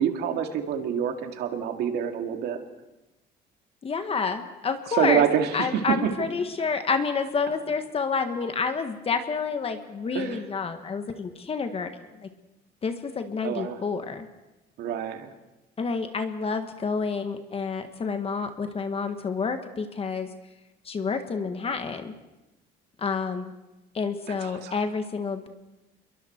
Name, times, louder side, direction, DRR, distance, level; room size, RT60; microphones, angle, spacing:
voice 1, 0.0-2.6 5.0-6.1 10.1-10.4 13.4-13.8 14.8-15.3 24.3-24.7, right 8 dB, 75° right, 5 dB, 2.2 m, -27 dB
voice 2, 3.8-5.3 5.5-12.3 12.8-14.3 15.8-20.3 20.8-22.1 23.0-23.5 23.9-25.5, left 5 dB, 35° left, 7 dB, 1.6 m, -29 dB
26.5 x 22.5 x 4.6 m, 1.0 s
cardioid pair, 110°, 17 cm